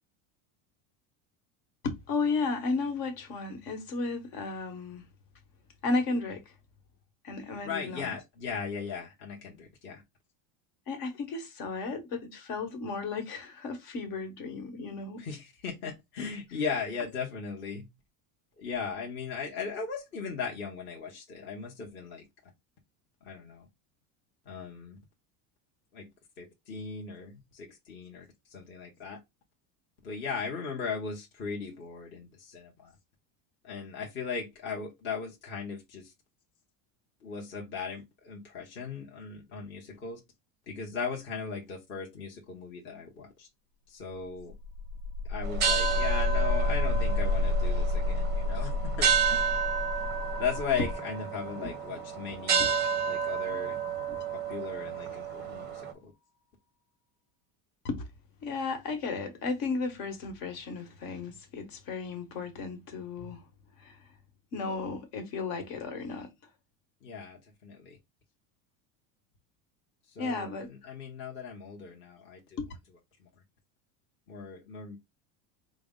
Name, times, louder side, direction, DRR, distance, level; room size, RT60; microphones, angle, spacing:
voice 1, 1.8-5.0 5.8-6.5 7.2-8.2 10.9-15.2 16.5-16.6 17.0-17.1 50.8-50.9 51.6-51.7 52.6-52.7 54.1-54.2 57.8-58.1 58.4-63.5 63.8-64.0 64.5-66.3 70.2-70.7 72.6-72.7, left 3 dB, 55° left, 1.2 m, -34 dB
voice 2, 7.6-10.0 15.2-17.8 18.6-22.2 23.2-23.7 24.4-25.0 25.9-26.1 26.4-29.2 30.0-32.9 33.6-36.1 37.2-40.2 40.7-43.5 43.9-44.5 45.2-48.7 49.0-49.5 50.3-52.8 53.0-53.8 54.3-56.1 67.0-68.0 70.1-72.6 73.2-73.3 74.3-75.0, left 5 dB, 25° left, 0.9 m, -38 dB
sound 1, 44.4-54.3, left 3 dB, 70° left, 0.8 m, -31 dB
sound 2, 45.4-55.9, right 7 dB, 25° right, 0.6 m, -31 dB
4.8 x 2.1 x 3.6 m
cardioid pair, 170°, 43 cm